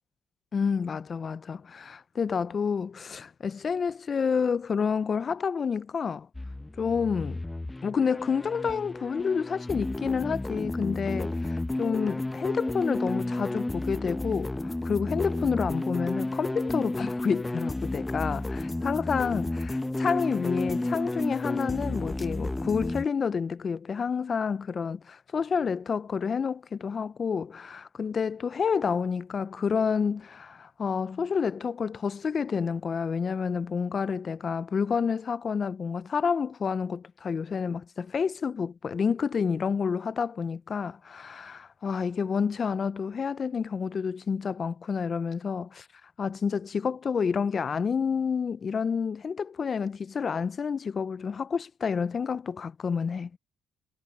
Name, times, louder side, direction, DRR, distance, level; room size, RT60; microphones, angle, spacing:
voice 1, 0.5-6.3 6.8-7.4 7.8-45.9 46.2-53.3, left 6 dB, 45° left, 0.4 m, -29 dB
sound 1, 6.3-23.1, left 2 dB, 15° left, 0.8 m, -32 dB
cardioid pair, 90°, 0 cm